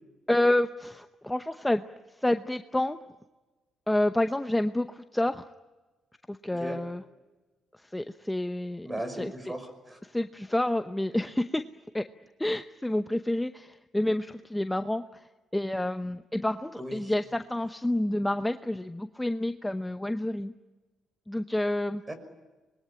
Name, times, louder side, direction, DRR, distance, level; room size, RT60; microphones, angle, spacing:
voice 1, 0.3-1.8 2.2-3.0 3.9-5.4 6.3-7.0 7.9-8.9 9.2-9.3 10.0-11.6 11.9-12.0 12.4-15.2 15.5-20.5 21.3-22.0, left 1 dB, 10° left, 9 dB, 0.8 m, -28 dB
voice 2, 8.8-10.0 16.8-17.1 22.1-22.2, right 1 dB, 15° right, 9 dB, 5.7 m, -37 dB
25.5 x 21.5 x 10.0 m, 1.2 s
cardioid pair, 90°, 0 cm